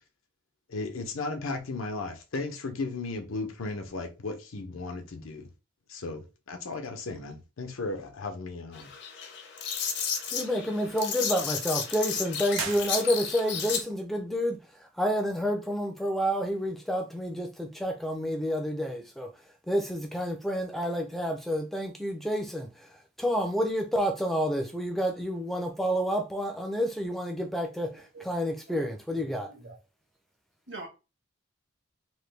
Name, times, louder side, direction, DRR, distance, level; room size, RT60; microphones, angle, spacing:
voice 1, 0.7-5.5 5.9-8.9, left 3 dB, 90° left, 0.7 m, -35 dB
sound 1, 8.7-13.8, left 7 dB, 55° left, 0.6 m, -33 dB
voice 2, 10.3-19.3 19.7-22.9 23.2-29.5, equal, ahead, 0.4 m, -29 dB
sound 2, 12.5-13.6, right 6 dB, 80° right, 0.8 m, -37 dB
voice 3, 28.7-29.8 30.7-30.9, right 3 dB, 65° right, 1.2 m, -45 dB
3.1 x 2.2 x 3.2 m
head